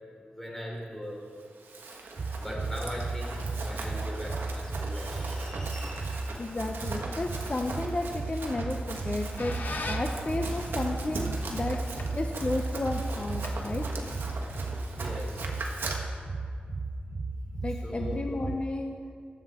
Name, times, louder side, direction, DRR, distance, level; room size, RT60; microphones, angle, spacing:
voice 1, 0.2-1.2 2.2-6.5 14.9-15.6 17.8-18.2, equal, 10° left, -3 dB, 3.1 m, -40 dB
Run, 1.4-16.0, right 3 dB, 85° right, 1.3 m, -40 dB
sound 1, 2.2-18.6, right 3 dB, 50° right, 0.5 m, -35 dB
voice 2, 6.4-11.8 12.1-13.8 17.6-19.0, left 2 dB, 35° left, 3 dB, 0.6 m, -33 dB
Squeak, 8.9-14.3, left 3 dB, 60° left, 1.1 m, -43 dB
14.5 x 8.0 x 3.6 m, 2.3 s
wide cardioid pair, 80°, 4 cm